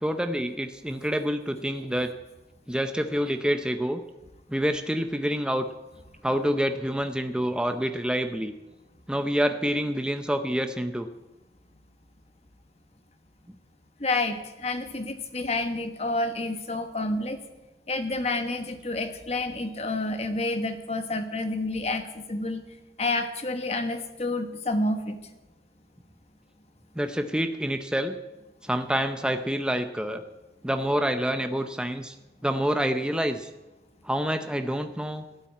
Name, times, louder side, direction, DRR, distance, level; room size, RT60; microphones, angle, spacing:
voice 1, 0.0-2.1 2.7-4.0 4.5-5.6 6.2-8.5 9.1-11.1 27.0-28.1 28.6-30.2 30.6-32.1 32.4-33.5 34.0-35.2, equal, 5° right, 7 dB, 0.6 m, -27 dB
voice 2, 14.0-17.4 17.9-22.6 23.0-25.2, left 2 dB, 35° left, 8 dB, 1.2 m, -29 dB
13.0 x 8.9 x 8.6 m, 1.1 s
head